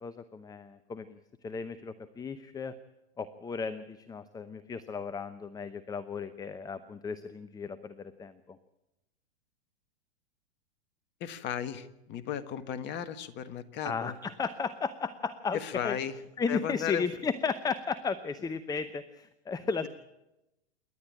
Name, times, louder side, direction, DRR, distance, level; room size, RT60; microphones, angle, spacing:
voice 1, 0.0-1.2 1.4-2.7 3.2-8.6 13.8-16.0 16.4-19.9, left 5 dB, 10° left, 14 dB, 0.8 m, -35 dB
voice 2, 11.2-14.1 15.5-16.2 16.5-17.0, left 9 dB, 35° left, 12 dB, 1.6 m, -35 dB
28.0 x 11.5 x 8.8 m, 0.92 s
hypercardioid pair, 110°, 33 cm